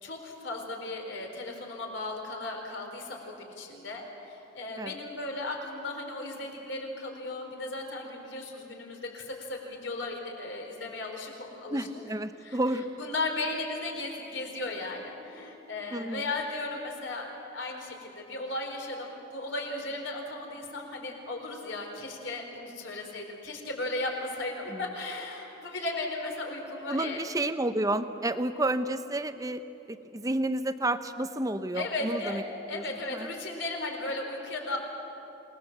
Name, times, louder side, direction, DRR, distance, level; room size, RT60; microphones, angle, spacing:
voice 1, 0.0-11.9 12.4-12.6 13.0-27.2 31.7-32.4 32.7-34.8, left 2 dB, 65° left, 2 dB, 4.2 m, -36 dB
voice 2, 11.7-12.9 15.9-16.2 24.7-24.8 26.9-29.6 29.9-32.4 32.7-32.8 33.1-33.3, right 1 dB, 15° right, 10 dB, 0.8 m, -30 dB
27.5 x 19.5 x 7.4 m, 3.0 s
head